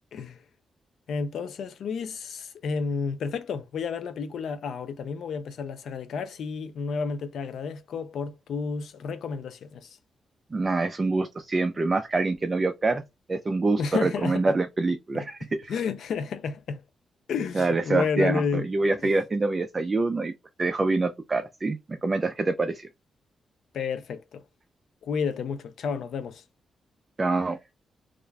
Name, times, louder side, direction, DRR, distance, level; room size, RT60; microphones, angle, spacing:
voice 1, 1.1-10.0 13.8-14.4 15.1-15.3 15.7-16.8 17.3-18.7 19.0-19.1 23.7-24.4 25.0-26.4, left 5 dB, 80° left, 0.4 m, -31 dB
voice 2, 10.5-13.0 13.3-15.7 17.5-20.3 20.6-22.9 27.2-27.6, right 3 dB, 30° right, 0.3 m, -26 dB
2.4 x 2.2 x 3.2 m
cardioid pair, 120°, 0 cm